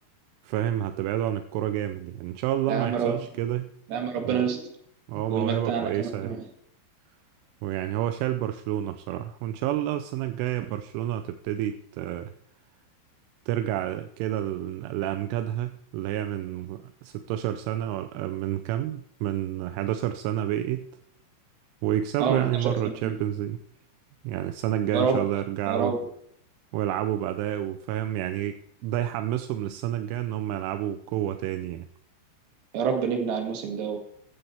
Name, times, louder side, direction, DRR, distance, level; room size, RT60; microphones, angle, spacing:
voice 1, 0.4-3.7 4.2-4.5 5.1-6.3 7.6-12.3 13.5-20.9 21.8-23.6 24.2-26.0 26.7-31.9, right 12 dB, 85° right, 3.2 m, -29 dB
voice 2, 2.7-3.2 3.9-4.6 5.1-6.4 22.2-23.2 24.9-25.2 25.7-26.0 32.7-34.0, right 6 dB, 65° right, 4.1 m, -27 dB
15.0 x 12.5 x 3.4 m
omnidirectional pair, 5.5 m